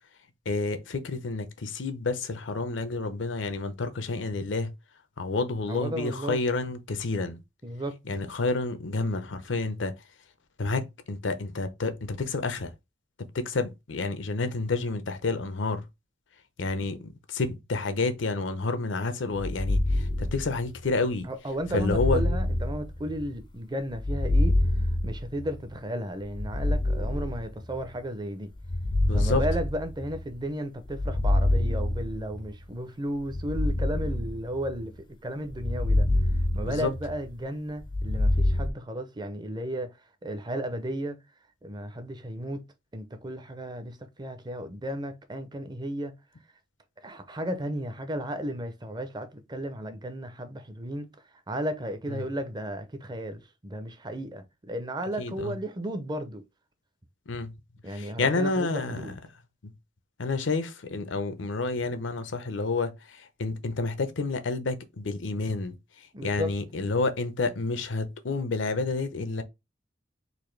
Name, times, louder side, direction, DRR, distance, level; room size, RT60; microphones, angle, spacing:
voice 1, 0.5-4.7 5.2-7.4 8.1-9.9 10.6-12.7 13.2-15.8 16.6-21.3 21.7-22.2 29.1-29.4 36.7-36.9 52.1-52.3 55.2-55.5 57.3-57.5 57.9-59.2 59.6-59.7 60.2-65.8 66.2-69.4, left 3 dB, 80° left, 0.6 m, -29 dB
voice 2, 5.7-6.4 7.6-8.0 21.2-24.5 25.0-28.5 29.1-34.9 35.2-36.1 36.5-40.0 40.2-41.2 41.6-42.6 42.9-46.1 47.0-51.1 51.5-56.4 57.8-59.1 66.1-66.5, equal, 25° right, 0.6 m, -34 dB
sound 1, 19.3-20.9 21.7-23.4 23.9-25.7 26.3-27.9 28.6-30.3 30.9-32.5 33.3-34.9 35.5-37.3 37.8-38.7, left 1 dB, 25° left, 0.4 m, -26 dB
4.1 x 2.6 x 3.2 m
head